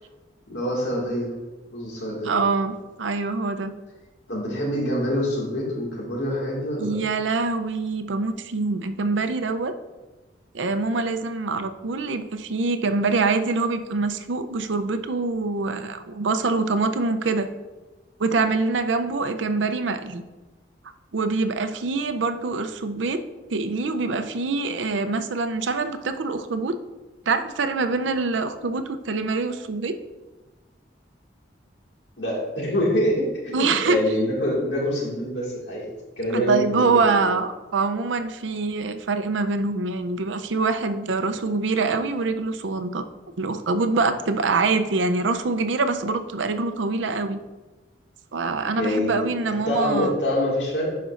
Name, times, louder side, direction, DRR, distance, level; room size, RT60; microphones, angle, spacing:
voice 1, 0.5-1.3 1.7-2.3 4.3-7.0 32.2-35.8 36.2-37.2 48.7-49.3 49.7-51.0, equal, 70° left, -3 dB, 2.1 m, -25 dB
voice 2, 2.2-3.7 6.8-9.7 10.5-17.5 18.2-20.2 21.1-23.2 23.5-26.8 27.3-30.0 33.5-34.0 36.3-43.0 43.4-47.4 48.3-50.2, right 3 dB, 85° right, 8 dB, 0.6 m, -24 dB
11.0 x 5.2 x 2.5 m, 1.2 s
head